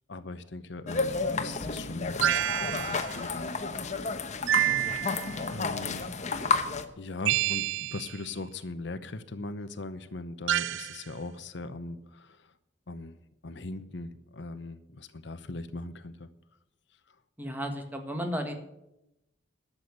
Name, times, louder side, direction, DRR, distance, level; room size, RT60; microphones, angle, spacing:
voice 1, 0.1-3.5 4.7-5.0 5.5-6.0 7.0-12.5 12.9-13.2 13.4-16.3, left 2 dB, 70° left, 12 dB, 0.8 m, -40 dB
sound 1, 0.9-6.8, left 4 dB, 40° left, 1.0 m, -31 dB
sound 2, 2.2-3.2 4.5-5.4 7.2-8.2 10.5-11.0, right 13 dB, 80° right, 0.4 m, -28 dB
voice 2, 17.4-18.5, equal, 10° right, 5 dB, 1.7 m, -34 dB
12.5 x 7.1 x 9.5 m, 0.88 s
head